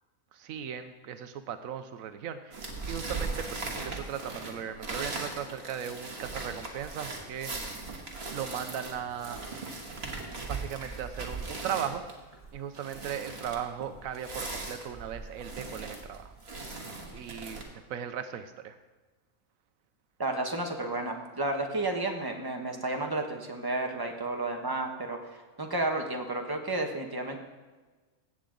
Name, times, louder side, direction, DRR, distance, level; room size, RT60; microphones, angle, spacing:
voice 1, 0.3-7.5 8.3-9.4 10.5-12.0 12.5-16.3 17.1-18.8, right 8 dB, 85° right, 9 dB, 1.0 m, -37 dB
sound 1, 2.5-17.6, right 3 dB, 50° right, 1.8 m, -39 dB
voice 2, 20.2-27.4, right 2 dB, 20° right, 3 dB, 1.0 m, -32 dB
16.0 x 7.6 x 3.8 m, 1.3 s
omnidirectional pair, 1.4 m